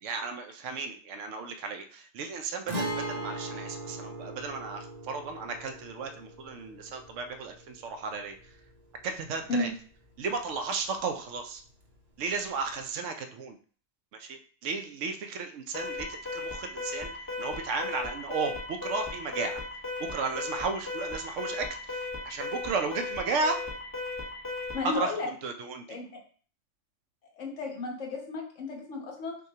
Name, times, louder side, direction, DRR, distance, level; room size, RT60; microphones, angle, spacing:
voice 1, 0.0-8.6 9.0-9.7 10.2-11.6 12.2-13.6 14.1-17.1 17.4-19.6 20.0-23.6 24.8-26.0, right 4 dB, 75° right, 6 dB, 0.9 m, -34 dB
Guitar, 2.7-10.3 10.6-10.7 12.7-12.8, right 1 dB, 40° right, 0.7 m, -39 dB
Alarm, 15.7-24.9, left 3 dB, 20° left, 0.9 m, -36 dB
voice 2, 24.7-25.3 25.9-26.0 27.3-29.4, left 3 dB, 70° left, 0 dB, 1.3 m, -33 dB
6.3 x 2.3 x 2.8 m, 0.43 s
omnidirectional pair, 1.3 m